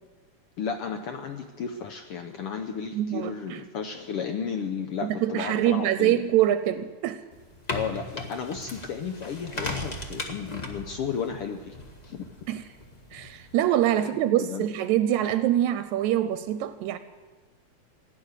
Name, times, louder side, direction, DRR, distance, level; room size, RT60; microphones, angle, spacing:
voice 1, 0.6-6.2 7.7-11.8 12.0-12.3 14.3-14.7, left 6 dB, 75° left, 6 dB, 1.3 m, -33 dB
voice 2, 2.9-3.6 5.0-7.2 12.5-12.6 13.1-17.0, right 12 dB, 80° right, 12 dB, 1.9 m, -24 dB
sound 1, 7.3-13.5, left 2 dB, 45° left, 0.5 m, -37 dB
16.0 x 10.5 x 8.1 m, 1.4 s
omnidirectional pair, 3.4 m